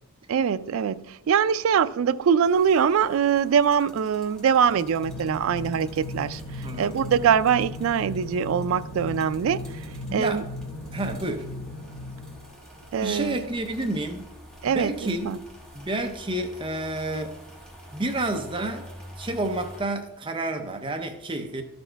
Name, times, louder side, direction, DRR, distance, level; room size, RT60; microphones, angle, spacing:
voice 1, 0.3-9.8 10.1-10.4 12.9-13.4 14.6-14.9 15.2-15.4, right 7 dB, 70° right, 0.3 m, -23 dB
sound 1, 2.4-19.8, equal, 5° left, 1.4 m, -48 dB
sound 2, 4.5-12.9, left 2 dB, 45° left, 1.5 m, -37 dB
voice 2, 6.6-7.0 10.1-10.4 10.9-11.5 13.0-14.2 14.6-15.3 15.7-17.4 17.9-18.9 19.2-21.6, right 2 dB, 25° right, 0.6 m, -29 dB
12.5 x 4.3 x 4.5 m
head